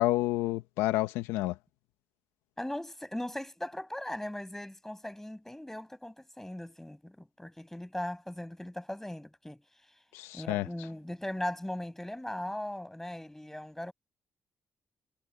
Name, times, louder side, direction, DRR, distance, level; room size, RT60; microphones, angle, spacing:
voice 1, 0.0-1.5 10.1-10.7, left 17 dB, 90° left, 1.2 m, -29 dB
voice 2, 2.6-9.6 10.3-13.9, left 1 dB, 10° left, 7.8 m, -39 dB
supercardioid pair, 50°, 4 cm